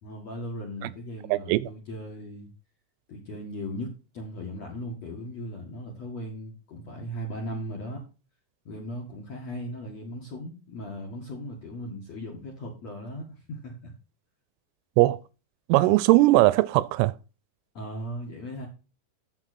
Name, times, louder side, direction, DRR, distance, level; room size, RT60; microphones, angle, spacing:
voice 1, 0.0-2.5 3.1-8.0 8.7-13.9 17.7-18.7, equal, 55° left, 2.0 m, -37 dB
voice 2, 1.3-1.7 15.0-15.2 15.7-17.1, right 18 dB, 85° right, 3.2 m, -20 dB
9.0 x 7.7 x 4.2 m
omnidirectional pair, 5.9 m